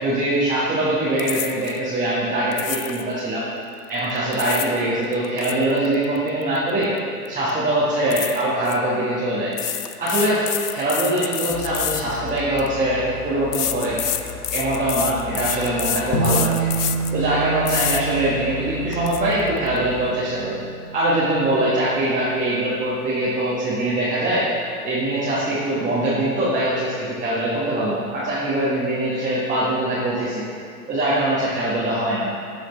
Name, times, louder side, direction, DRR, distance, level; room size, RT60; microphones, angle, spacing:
voice 1, 0.0-3.5 3.9-6.9 7.3-9.5 10.0-14.0 14.5-16.7 17.1-20.6 20.9-24.5 24.8-30.4 30.9-32.3, right 1 dB, 15° right, -9 dB, 1.5 m, -22 dB
sound 1, 1.2-1.8 2.5-3.1 4.1-4.8 5.1-7.0 7.3-7.5 8.1-8.8 9.5-12.7 13.5-17.2 17.7-18.0 18.5-18.6 18.9-19.2, left 10 dB, 90° left, 0.5 m, -28 dB
sound 2, 11.5-20.1, left 5 dB, 5° left, 1.0 m, -36 dB
sound 3, 16.1-22.7, right 4 dB, 50° left, 1.7 m, -29 dB
13.0 x 4.9 x 3.3 m, 2.2 s
figure-of-eight pair, 105°, 45 cm